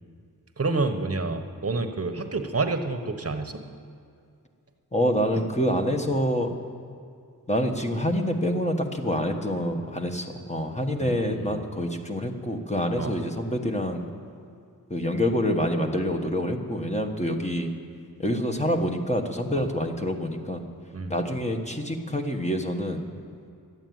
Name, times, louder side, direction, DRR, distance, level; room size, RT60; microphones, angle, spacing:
voice 1, 0.6-3.6 11.0-11.6 13.0-13.1 20.9-21.1, right 3 dB, 40° right, 7 dB, 1.1 m, -28 dB
voice 2, 4.9-6.5 7.5-14.0 14.9-17.7 18.2-20.7 21.1-23.1, equal, 20° left, 4 dB, 1.3 m, -26 dB
12.5 x 8.9 x 9.4 m, 2.4 s
wide cardioid pair, 90°, 37 cm